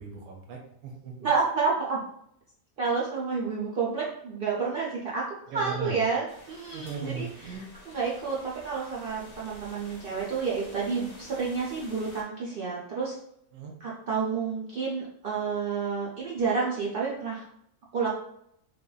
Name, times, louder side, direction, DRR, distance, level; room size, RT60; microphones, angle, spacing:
voice 1, 0.0-1.3 5.5-6.0 6.7-7.7 13.5-13.7, right 5 dB, 90° right, 1 dB, 1.1 m, -38 dB
voice 2, 1.2-2.0 2.8-5.2 5.5-7.3 7.9-13.2 13.8-17.5 17.9-18.1, right 5 dB, 70° right, -6 dB, 0.5 m, -29 dB
sound 1, 6.3-12.2, left 2 dB, 55° left, 0.7 m, -50 dB
3.2 x 2.1 x 2.3 m, 0.73 s
omnidirectional pair, 1.5 m